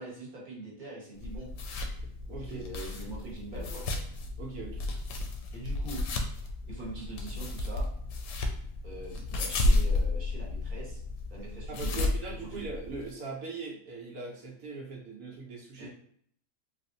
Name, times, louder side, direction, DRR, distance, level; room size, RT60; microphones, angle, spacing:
voice 1, 0.0-1.5 2.4-4.0 5.5-6.0 6.7-7.9 8.8-11.0 11.3-12.1 12.6-12.7 15.8-15.9, right 2 dB, 40° right, -5 dB, 1.0 m, -43 dB
sound 1, 1.2-13.1, left 2 dB, 85° left, 1.0 m, -32 dB
voice 2, 2.3-2.7 4.4-4.9 11.7-15.9, right 3 dB, 90° right, -2 dB, 1.1 m, -40 dB
3.3 x 2.4 x 2.6 m, 0.64 s
omnidirectional pair, 1.5 m